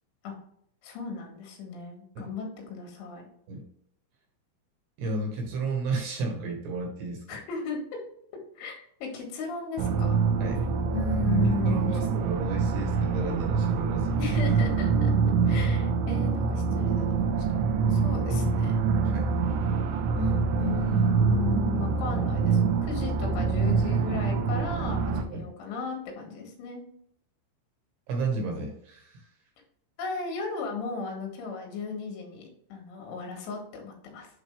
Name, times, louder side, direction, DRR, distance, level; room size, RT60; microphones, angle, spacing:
voice 1, 0.8-3.2 7.3-8.0 8.6-10.2 10.9-11.9 14.2-15.1 15.5-17.4 17.9-18.8 20.2-26.8 30.0-32.4 32.7-34.3, left 5 dB, 80° left, 1 dB, 4.0 m, -35 dB
voice 2, 5.0-7.2 10.4-10.6 11.7-14.3 15.4-15.6 18.3-18.5 19.0-19.3 25.3-25.5 28.1-29.3, right 3 dB, 70° right, 2 dB, 2.9 m, -32 dB
sound 1, 9.8-25.2, right 5 dB, 85° right, 2.6 m, -25 dB
9.7 x 3.9 x 3.5 m, 0.69 s
omnidirectional pair, 5.6 m